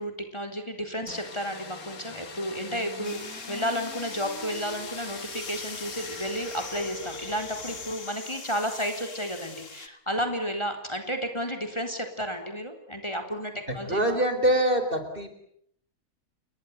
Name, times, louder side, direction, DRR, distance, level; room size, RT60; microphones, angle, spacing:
voice 1, 0.0-14.2, equal, 20° left, 6 dB, 4.0 m, -32 dB
sound 1, 1.1-7.9, left 4 dB, 80° left, 2.9 m, -42 dB
sound 2, 3.0-9.9, left 4 dB, 60° left, 2.6 m, -42 dB
voice 2, 13.7-15.3, right 1 dB, 35° right, 8 dB, 4.3 m, -24 dB
29.5 x 22.0 x 8.3 m, 0.70 s
omnidirectional pair, 1.5 m